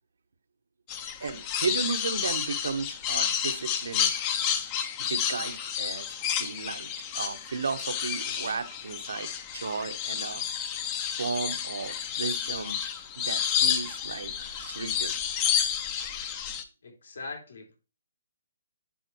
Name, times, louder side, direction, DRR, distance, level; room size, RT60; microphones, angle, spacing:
sound 1, 0.9-16.6, left 8 dB, 20° left, 0.7 m, -30 dB
voice 1, 1.2-4.1 5.0-6.1 6.4-6.9 7.1-10.4 11.1-12.8 13.2-15.1, right 5 dB, 75° right, 9 dB, 1.0 m, -34 dB
voice 2, 16.8-17.7, left 3 dB, 75° left, 0 dB, 3.4 m, -41 dB
9.9 x 4.3 x 3.0 m, 0.31 s
hypercardioid pair, 165°, 0 cm